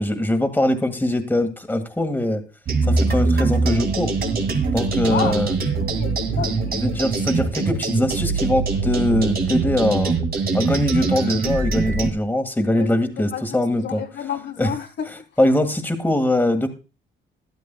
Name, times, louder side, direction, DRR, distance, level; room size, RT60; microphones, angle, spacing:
voice 1, 0.0-2.4 2.8-4.1 4.7-5.5 6.4-10.1 10.5-14.0 14.6-14.7 15.1-16.7, left 1 dB, 10° left, 1.8 m, -22 dB
sound 1, 2.7-12.1, right 4 dB, 50° right, 2.3 m, -22 dB
voice 2, 5.0-5.4 6.0-6.5 12.8-12.9 13.2-15.2, left 8 dB, 65° left, 1.6 m, -30 dB
13.0 x 11.5 x 2.3 m
cardioid pair, 90°, 20 cm